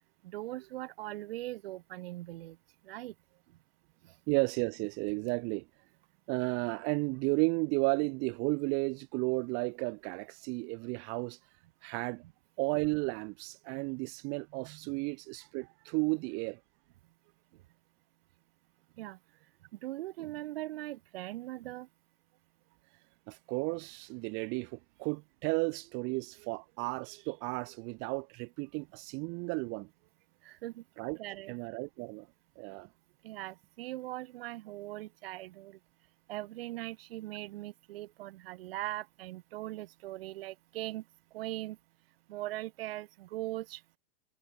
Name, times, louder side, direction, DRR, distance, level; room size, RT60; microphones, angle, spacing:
voice 1, 0.2-2.6 2.8-3.1 4.0-4.1 14.9-15.0 19.0-19.2 19.7-21.9 30.4-30.8 31.2-31.5 33.2-35.8 36.3-41.0 41.3-41.8 42.3-44.0, right 16 dB, 70° right, 1.0 m, -40 dB
voice 2, 4.3-5.7 6.3-11.4 11.8-12.2 12.6-16.6 23.3-29.9 31.0-31.2 31.5-32.3 32.6-32.9, right 32 dB, 40° right, 0.7 m, -33 dB
hypercardioid pair, 130°, 31 cm